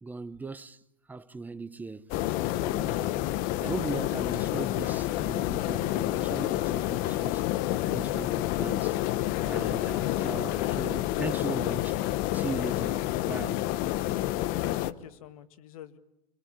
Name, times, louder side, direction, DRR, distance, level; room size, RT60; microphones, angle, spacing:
voice 1, 0.0-0.8 1.1-2.1 2.5-3.1 3.6-7.4 7.9-9.0 9.4-12.0 12.3-13.7, right 3 dB, 10° right, 1.0 m, -38 dB
sound 1, 2.1-14.9, left 15 dB, 50° left, 1.0 m, -29 dB
voice 2, 14.4-16.0, left 10 dB, 75° left, 1.9 m, -44 dB
26.5 x 24.0 x 8.8 m
hypercardioid pair, 110°, 18 cm